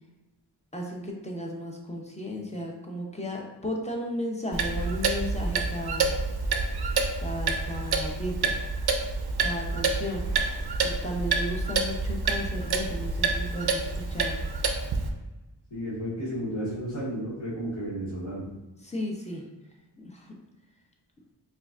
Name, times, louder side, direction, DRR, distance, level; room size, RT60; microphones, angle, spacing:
voice 1, 0.7-6.1 7.2-8.6 9.4-10.3 10.8-14.4 18.8-19.4 20.0-20.3, equal, 15° left, -1 dB, 0.6 m, -34 dB
Clock, 4.5-15.1, right 4 dB, 60° right, 0.5 m, -28 dB
voice 2, 15.7-18.5, equal, 85° left, -10 dB, 1.2 m, -33 dB
4.5 x 2.4 x 2.5 m, 1.1 s
wide cardioid pair, 65°, 44 cm